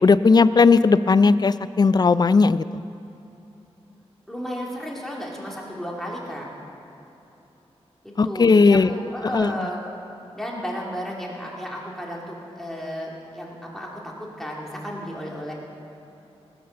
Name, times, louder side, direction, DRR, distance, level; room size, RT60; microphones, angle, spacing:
voice 1, 0.0-2.6 8.2-8.9 9.3-9.5, left 4 dB, 40° left, 15 dB, 0.4 m, -16 dB
voice 2, 4.3-6.5 8.2-9.8 10.3-15.5, equal, 5° left, -3 dB, 2.9 m, -33 dB
18.0 x 8.7 x 6.7 m, 3.0 s
wide cardioid pair, 95°, 11 cm